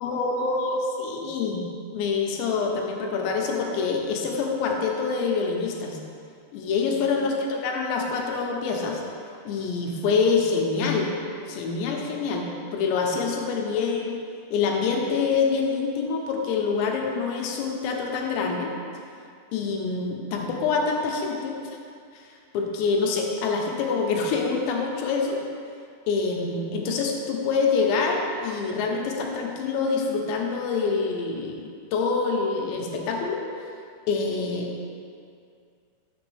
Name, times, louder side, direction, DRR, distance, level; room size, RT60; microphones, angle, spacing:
voice 1, 0.0-1.6 1.9-6.0 6.5-9.0 9.5-11.2 11.5-14.1 14.5-18.7 19.5-21.6 22.1-22.3 22.5-25.4 26.1-33.4 34.1-34.8, left 4 dB, 90° left, 0 dB, 2.9 m, -26 dB
6.8 x 6.0 x 3.2 m, 2.3 s
omnidirectional pair, 4.9 m